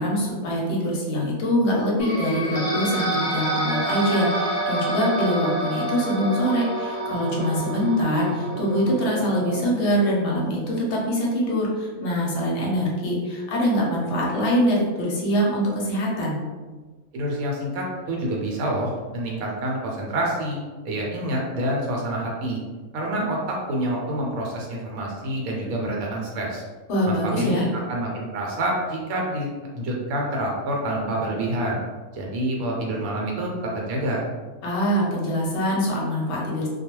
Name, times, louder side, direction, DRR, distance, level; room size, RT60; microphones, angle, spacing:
voice 1, 0.0-16.4 26.9-27.7 34.6-36.7, equal, 60° left, -3 dB, 0.9 m, -24 dB
sound 1, 2.0-9.6, right 1 dB, 35° left, 0.5 m, -28 dB
voice 2, 17.1-22.6 22.9-26.6 27.1-29.5 29.7-31.8 32.1-34.3, right 1 dB, 80° right, -2 dB, 1.0 m, -27 dB
2.3 x 2.3 x 2.9 m, 1.4 s
omnidirectional pair, 1.5 m